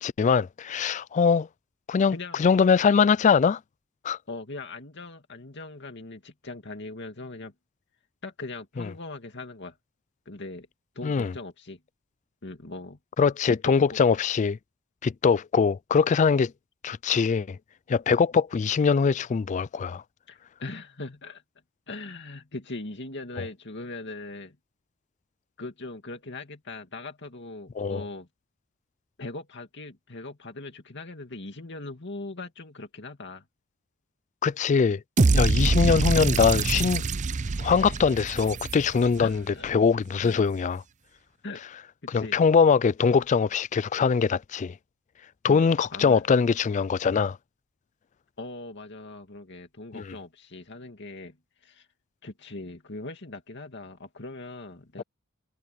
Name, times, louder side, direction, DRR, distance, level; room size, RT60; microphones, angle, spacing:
voice 1, 0.0-1.5 1.9-3.6 4.0-4.2 8.8-8.9 11.0-11.3 13.2-14.6 15.0-16.5 16.8-17.6 17.9-20.0 27.8-28.0 34.4-35.0 35.3-37.0 37.6-40.8 42.1-44.7 45.4-47.4 50.0-50.1, left 5 dB, 35° left, 0.3 m, -22 dB
voice 2, 2.1-2.4 4.3-7.5 8.2-9.8 10.3-10.7 10.9-11.8 12.4-13.0 13.5-14.0 20.3-21.4 21.9-24.6 25.6-28.3 29.2-33.4 39.2-39.7 40.2-40.4 41.4-41.6 42.0-42.4 45.5-46.2 48.4-51.9 52.2-55.0, left 2 dB, 55° left, 2.3 m, -40 dB
sound 1, 35.2-39.3, right 3 dB, 35° right, 0.5 m, -24 dB
head